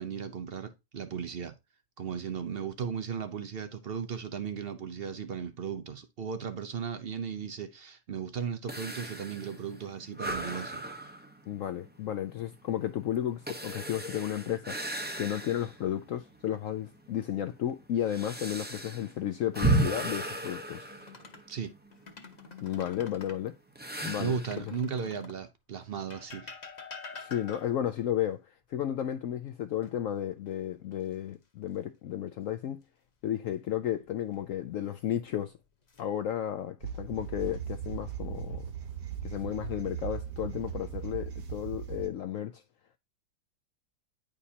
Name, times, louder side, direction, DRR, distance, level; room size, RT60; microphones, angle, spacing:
voice 1, 0.0-1.5 2.0-10.8 21.5-21.7 24.2-26.5, right 7 dB, 60° right, 0.6 m, -36 dB
sound 1, 8.7-15.9 16.3-16.4 17.2-21.8 23.8-24.6, right 2 dB, 15° right, 0.4 m, -34 dB
voice 2, 11.5-14.8 15.2-20.9 22.6-23.5 24.0-24.6 27.1-32.8 33.2-35.5 36.0-38.7 39.2-42.6, left 11 dB, 70° left, 0.7 m, -33 dB
sound 2, 20.2-21.5 21.9-23.4 24.3-25.5 26.1-27.9 29.8-30.5 30.9-31.1 34.0-34.6 35.4-36.0, left 4 dB, 30° left, 0.9 m, -47 dB
sound 3, 36.8-42.1, right 8 dB, 80° right, 1.5 m, -38 dB
9.7 x 5.1 x 2.8 m
omnidirectional pair, 1.8 m